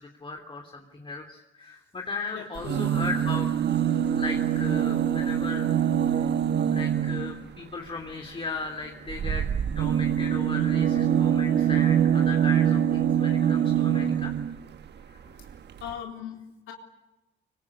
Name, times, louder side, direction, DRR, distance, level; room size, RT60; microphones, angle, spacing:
voice 1, 0.0-3.5 4.1-5.7 6.1-6.3 6.7-9.5 9.8-14.3 15.1-15.2, left 4 dB, 25° left, 1 dB, 3.4 m, -37 dB
voice 2, 2.3-3.1 15.8-16.4 16.7-16.8, left 9 dB, 90° left, 1 dB, 3.9 m, -38 dB
sound 1, 2.6-7.4 9.1-14.6 15.5-15.6 15.8-15.9, right 9 dB, 60° right, 1.4 m, -24 dB
25.0 x 24.5 x 8.7 m, 0.99 s
cardioid pair, 90°, 20 cm